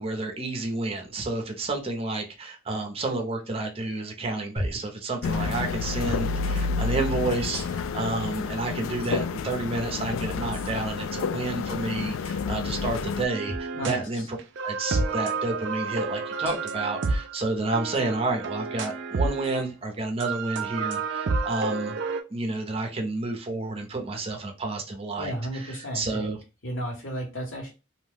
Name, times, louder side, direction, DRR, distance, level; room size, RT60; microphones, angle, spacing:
voice 1, 0.0-14.4 14.6-22.0 22.3-26.4, right 2 dB, 30° right, 0.7 m, -30 dB
sound 1, 4.6-4.9 6.0-6.3 7.5-8.0 9.0-9.1 10.5-10.7 13.5-13.7 14.9-15.2 16.4-16.8 17.9-18.0 19.4-19.6, equal, 10° left, 0.6 m, -36 dB
sound 2, 5.2-13.3, left 5 dB, 90° left, 0.3 m, -30 dB
sound 3, 13.3-14.1 14.4-19.7 20.2-22.2, right 3 dB, 65° right, 0.4 m, -30 dB
voice 2, 13.7-14.3 25.2-27.7, equal, 75° left, 1.3 m, -34 dB
2.6 x 2.2 x 3.5 m
head